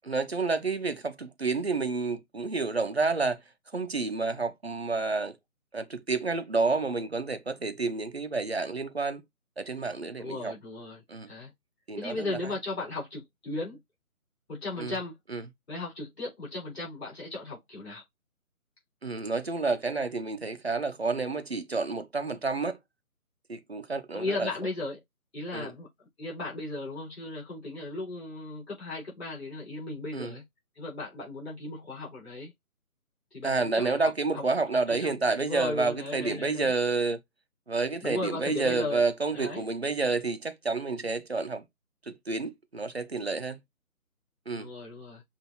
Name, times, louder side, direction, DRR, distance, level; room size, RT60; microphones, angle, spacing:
voice 1, 0.1-3.4 3.7-5.4 5.7-9.2 9.6-10.5 11.1-11.3 11.9-12.5 14.8-15.0 15.3-15.4 19.0-22.8 23.5-24.5 25.5-25.7 30.1-30.3 33.4-37.2 37.7-41.6 42.1-43.6 44.5-44.7, right 3 dB, 45° right, 0.6 m, -29 dB
voice 2, 10.2-11.5 12.0-13.8 14.5-15.1 15.7-18.0 24.1-25.0 25.3-30.4 30.8-32.5 33.3-34.4 34.9-35.1 35.4-36.7 38.0-39.0 39.3-39.7 44.5-45.2, left 2 dB, 45° left, 4.0 m, -36 dB
7.0 x 2.6 x 2.8 m
figure-of-eight pair, 160°, 45 cm